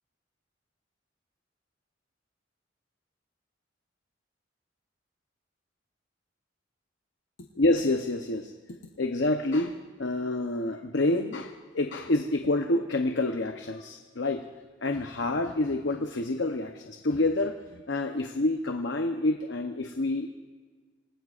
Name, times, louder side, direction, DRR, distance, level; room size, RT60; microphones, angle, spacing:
voice 1, 7.6-8.5 9.0-14.4 14.8-20.3, left 2 dB, 65° left, 5 dB, 0.8 m, -28 dB
26.5 x 19.0 x 2.5 m, 1.5 s
head